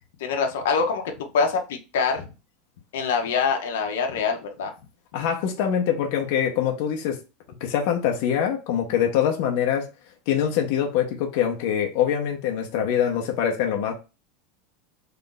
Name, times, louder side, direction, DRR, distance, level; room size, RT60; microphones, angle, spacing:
voice 1, 0.2-2.3 2.9-4.7, left 5 dB, 90° left, 0.8 m, -25 dB
voice 2, 5.1-7.2 7.5-9.9 10.3-13.9, left 9 dB, 55° left, 0.8 m, -24 dB
3.3 x 2.5 x 3.9 m
supercardioid pair, 165°, 0 cm